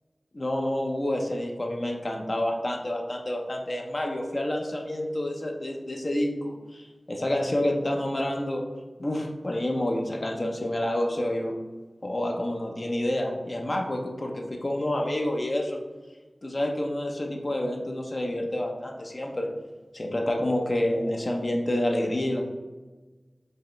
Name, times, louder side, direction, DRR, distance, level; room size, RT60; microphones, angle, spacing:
voice 1, 0.3-8.6 9.0-11.6 12.0-15.8 16.4-19.5 19.9-22.4, left 1 dB, 50° left, 1 dB, 0.6 m, -28 dB
4.7 x 3.0 x 3.2 m, 1.3 s
wide cardioid pair, 45°, 0 cm